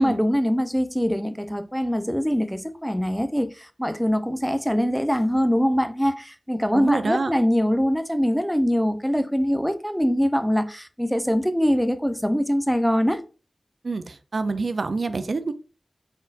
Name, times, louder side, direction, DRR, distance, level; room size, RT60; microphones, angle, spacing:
voice 1, 0.0-13.2, equal, ahead, 0.5 m, -23 dB
voice 2, 6.7-7.3 13.8-15.5, right 3 dB, 80° right, 0.4 m, -27 dB
4.1 x 3.8 x 2.4 m
wide cardioid pair, 55°, 0 cm